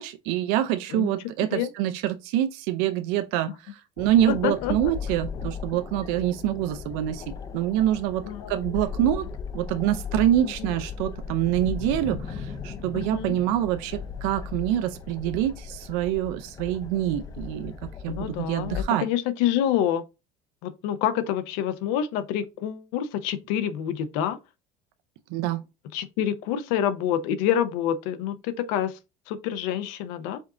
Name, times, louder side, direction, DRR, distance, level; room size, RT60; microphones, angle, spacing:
voice 1, 0.0-7.2 7.5-9.3 9.5-17.7 18.0-19.1 25.3-25.6, right 12 dB, 75° right, 0.4 m, -26 dB
sound 1, 4.0-18.8, left 6 dB, 25° left, 0.4 m, -37 dB
voice 2, 4.3-4.9 8.2-8.5 10.6-10.7 12.9-13.3 18.1-20.0 20.6-24.4 25.9-29.0 29.3-30.4, left 10 dB, 80° left, 0.6 m, -27 dB
5.1 x 2.5 x 3.7 m
cardioid pair, 145°, 16 cm